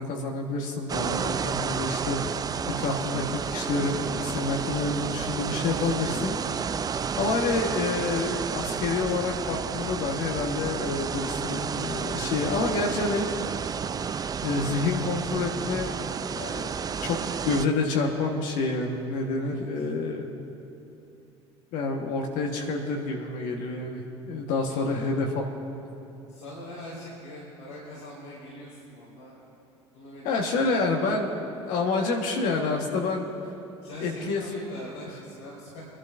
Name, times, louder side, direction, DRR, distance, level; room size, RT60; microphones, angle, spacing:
voice 1, 0.0-2.4 2.8-6.4 7.2-13.3 14.4-16.0 16.3-16.7 17.0-17.2 17.4-20.2 21.7-25.6 30.2-31.3 31.7-33.3 34.0-34.4, left 3 dB, 65° left, 1 dB, 1.4 m, -28 dB
sound 1, 0.9-17.7, right 6 dB, 25° right, 0.4 m, -31 dB
voice 2, 24.5-25.1 26.3-29.4 29.9-31.2 33.8-35.8, left 1 dB, 85° left, -7 dB, 3.2 m, -42 dB
24.5 x 11.0 x 2.6 m, 2.9 s
hypercardioid pair, 70°, 15 cm